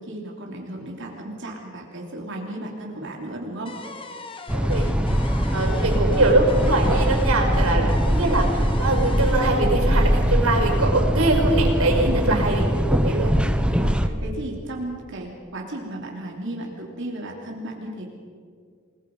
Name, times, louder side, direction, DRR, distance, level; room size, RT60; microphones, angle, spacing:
voice 1, 0.0-3.7 5.0-5.2 5.6-6.0 7.8-8.0 12.0-12.5 13.7-18.1, right 1 dB, 60° right, -1 dB, 3.1 m, -34 dB
sound 1, 3.7-10.6, left 3 dB, 25° left, 1.6 m, -40 dB
sound 2, 4.5-14.1, equal, 5° right, 0.9 m, -22 dB
voice 2, 4.5-4.9 5.5-13.3, right 2 dB, 75° right, 2 dB, 5.6 m, -23 dB
29.0 x 20.0 x 5.4 m, 2.2 s
head